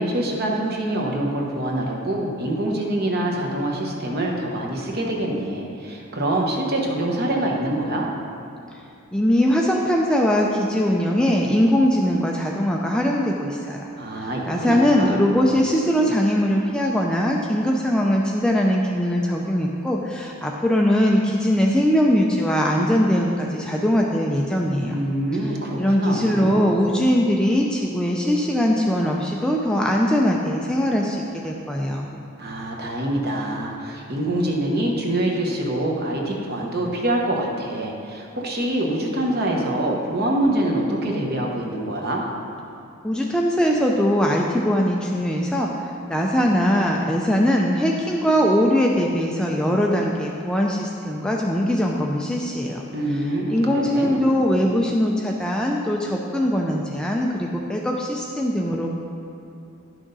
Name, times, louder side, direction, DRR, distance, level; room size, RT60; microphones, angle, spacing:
voice 1, 0.0-8.1 14.0-15.2 24.9-26.6 32.4-42.2 52.9-54.3, right 1 dB, 45° right, -1 dB, 1.1 m, -25 dB
voice 2, 9.1-25.0 25.8-32.1 43.0-52.8 53.5-59.0, equal, 5° left, -1 dB, 0.4 m, -21 dB
11.0 x 6.1 x 4.0 m, 2.7 s
head